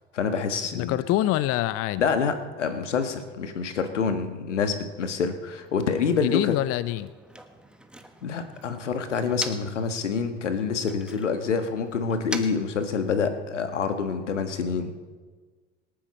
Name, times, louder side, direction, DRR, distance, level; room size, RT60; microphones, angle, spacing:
voice 1, 0.1-1.0 2.0-6.5 8.2-14.9, left 5 dB, 80° left, 8 dB, 1.5 m, -27 dB
voice 2, 0.7-2.0 6.2-7.1, left 15 dB, 40° left, 16 dB, 0.6 m, -25 dB
Motor vehicle (road), 5.4-9.9 10.2-13.5, right 1 dB, 5° right, 1.4 m, -43 dB
26.0 x 10.5 x 4.2 m, 1.5 s
figure-of-eight pair, 70°, 36 cm